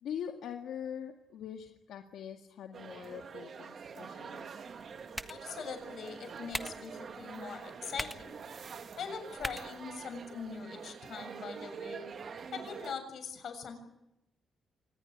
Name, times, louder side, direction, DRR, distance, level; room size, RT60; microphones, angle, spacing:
voice 1, 0.0-4.6, left 8 dB, 85° left, 4 dB, 2.0 m, -43 dB
sound 1, 2.7-12.9, right 6 dB, 55° right, 2.7 m, -46 dB
sound 2, 4.6-10.6, equal, ahead, 1.5 m, -45 dB
voice 2, 5.3-8.4 9.0-12.1 12.5-13.8, left 6 dB, 65° left, 8 dB, 7.2 m, -42 dB
26.0 x 20.0 x 9.4 m, 0.86 s
cardioid pair, 95°, 0 cm